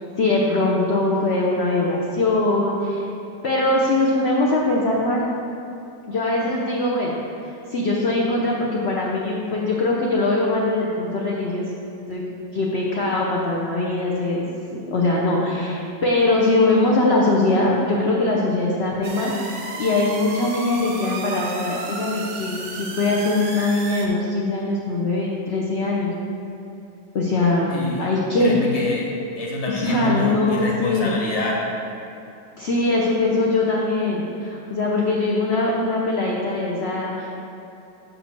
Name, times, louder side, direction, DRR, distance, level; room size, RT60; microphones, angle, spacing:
voice 1, 0.2-3.1 3.4-5.2 6.1-11.7 12.1-12.2 12.5-14.4 14.7-26.1 27.1-28.5 29.7-31.1 32.6-37.3, left 2 dB, 50° left, -3 dB, 0.8 m, -22 dB
sound 1, 19.0-24.1, right 3 dB, 55° right, 0.9 m, -33 dB
voice 2, 27.7-28.1 28.4-29.1 29.4-31.6, left 2 dB, 25° left, -3 dB, 0.9 m, -26 dB
6.2 x 5.2 x 6.0 m, 2.9 s
omnidirectional pair, 1.9 m